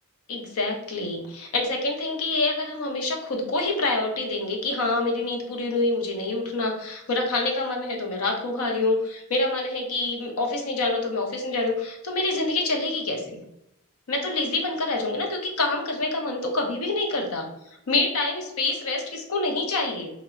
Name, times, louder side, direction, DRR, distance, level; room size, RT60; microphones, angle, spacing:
voice 1, 0.3-13.4 14.1-17.5 17.9-20.1, left 2 dB, 75° left, 2 dB, 0.6 m, -26 dB
2.8 x 2.1 x 2.4 m, 0.82 s
head